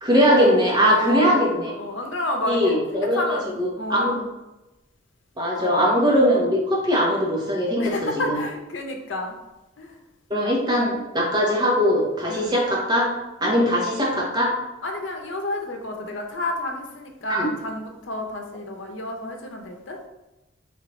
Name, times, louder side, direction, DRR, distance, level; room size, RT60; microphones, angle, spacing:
voice 1, 0.0-1.7 2.5-3.2 3.6-4.1 5.4-8.4 10.3-13.1 13.4-14.5 17.3-17.5, equal, 25° right, -3 dB, 1.0 m, -20 dB
voice 2, 0.8-1.5 1.7-4.3 5.6-5.9 7.8-9.4 9.8-10.0 12.3-12.6 14.8-20.0, left 1 dB, 85° left, 3 dB, 0.7 m, -30 dB
4.4 x 3.3 x 3.1 m, 0.99 s
head